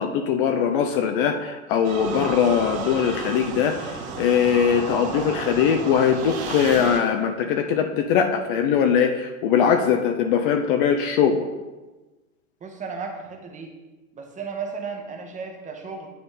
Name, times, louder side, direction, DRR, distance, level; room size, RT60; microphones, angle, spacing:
voice 1, 0.0-11.5, left 7 dB, 40° left, 6 dB, 0.5 m, -21 dB
sound 1, 1.8-7.0, right 4 dB, 45° right, 1.3 m, -32 dB
voice 2, 12.6-13.7 14.1-16.1, right 5 dB, 15° right, 3 dB, 0.9 m, -34 dB
9.2 x 4.0 x 3.4 m, 1.2 s
hypercardioid pair, 105°, 43 cm